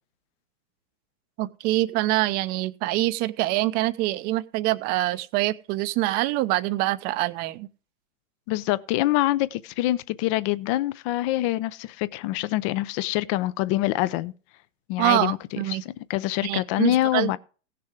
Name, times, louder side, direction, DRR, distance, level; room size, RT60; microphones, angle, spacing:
voice 1, 1.4-7.7 15.0-15.8 16.4-17.4, right 17 dB, 25° right, 0.7 m, -25 dB
voice 2, 8.5-14.3 14.9-15.4 15.7-17.4, left 16 dB, 25° left, 0.5 m, -25 dB
16.5 x 6.8 x 4.8 m
hypercardioid pair, 120°, 38 cm